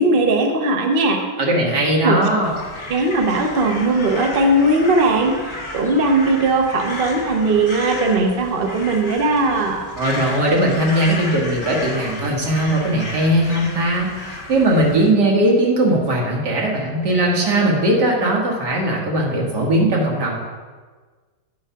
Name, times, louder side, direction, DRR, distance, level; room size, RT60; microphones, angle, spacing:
voice 1, 0.0-1.2 2.0-2.2 2.9-9.8, right 2 dB, 45° right, 2 dB, 0.8 m, -18 dB
voice 2, 1.4-2.6 10.0-20.3, right 1 dB, 70° right, -2 dB, 2.1 m, -19 dB
Crow, 2.4-15.1, left 2 dB, 40° left, 1.5 m, -33 dB
8.7 x 4.8 x 5.6 m, 1.5 s
omnidirectional pair, 1.9 m